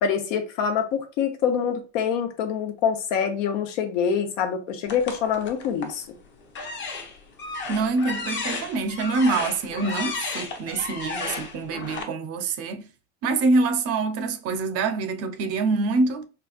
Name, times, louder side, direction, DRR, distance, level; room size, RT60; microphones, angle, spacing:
voice 1, 0.0-6.0, left 7 dB, 80° left, 0.9 m, -25 dB
sound 1, 4.9-6.0 6.5-12.0, left 4 dB, 30° left, 0.7 m, -33 dB
voice 2, 7.7-12.9 13.2-16.3, right 3 dB, 40° right, 0.5 m, -25 dB
4.1 x 2.3 x 2.4 m
supercardioid pair, 135°, 37 cm